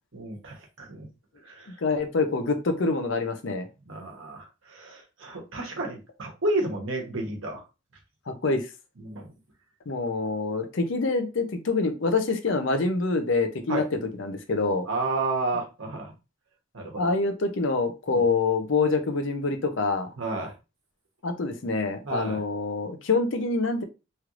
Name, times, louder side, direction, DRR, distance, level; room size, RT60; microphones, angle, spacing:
voice 1, 0.1-1.1 1.4-1.7 3.8-7.6 9.0-9.3 13.7-13.8 14.8-16.1 16.7-17.1 18.1-18.2 20.2-20.5 22.0-22.4, right 2 dB, 80° right, 1 dB, 1.0 m, -31 dB
voice 2, 1.8-3.7 8.3-8.7 9.9-14.9 17.0-20.1 21.2-23.8, left 3 dB, 70° left, 7 dB, 0.6 m, -26 dB
3.2 x 3.0 x 2.4 m, 0.29 s
head